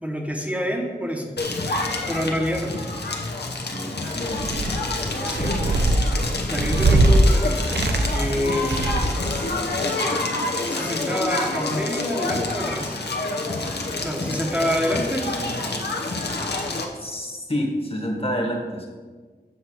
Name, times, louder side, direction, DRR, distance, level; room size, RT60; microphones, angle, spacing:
voice 1, 0.0-1.3 2.0-2.7 5.3-5.5 6.5-7.6 8.1-9.2 10.7-13.0 14.0-15.3, equal, 10° right, 1 dB, 1.0 m, -27 dB
Crackle, 1.4-16.8, left 2 dB, 80° left, 0.9 m, -27 dB
voice 2, 3.7-4.7 17.0-18.9, equal, 35° left, 1 dB, 1.5 m, -28 dB
sound 1, 4.2-4.9 5.3-7.2 7.6-8.3 8.6-9.3, right 2 dB, 90° right, 0.6 m, -21 dB
7.0 x 5.8 x 4.5 m, 1.4 s
wide cardioid pair, 60°, 17 cm